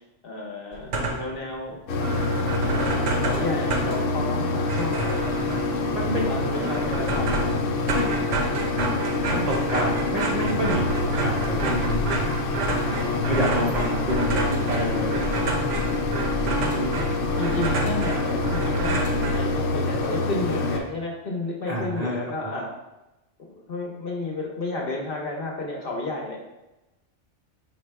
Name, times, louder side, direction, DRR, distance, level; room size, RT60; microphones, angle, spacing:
voice 1, 0.0-1.8 2.9-5.4 6.0-7.6 13.0-14.0 16.6-17.1 17.4-22.7 23.4-26.4, left 2 dB, 55° left, 0 dB, 0.9 m, -32 dB
sound 1, 0.7-1.4 1.7-1.8 2.0-19.8, right 3 dB, 75° right, 1.0 m, -30 dB
Mechanisms, 1.9-20.8, left 3 dB, 85° left, 0.9 m, -26 dB
voice 2, 5.9-6.2 7.9-8.3 9.3-12.2 12.7-15.6 16.8-16.9 21.7-22.2 22.4-22.6, right 1 dB, 45° right, -4 dB, 0.5 m, -29 dB
4.7 x 2.1 x 4.5 m, 0.98 s
omnidirectional pair, 1.2 m